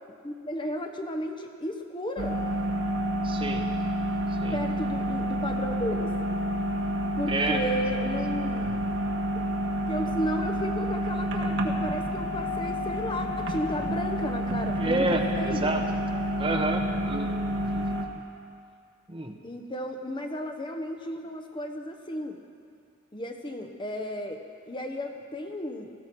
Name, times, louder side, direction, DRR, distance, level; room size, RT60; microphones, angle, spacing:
voice 1, 0.2-2.4 4.5-6.1 7.2-8.8 9.3-9.4 9.9-15.8 19.4-22.4 23.1-25.9, equal, 25° left, 4 dB, 0.8 m, -34 dB
sound 1, 2.2-18.1, equal, 60° right, 1.6 m, -29 dB
voice 2, 3.2-3.7 4.4-4.6 7.3-7.6 14.8-15.8 16.4-17.4 17.8-17.9 19.1-19.3, right 2 dB, 25° right, 3 dB, 1.0 m, -29 dB
18.5 x 15.0 x 4.6 m, 2.3 s
head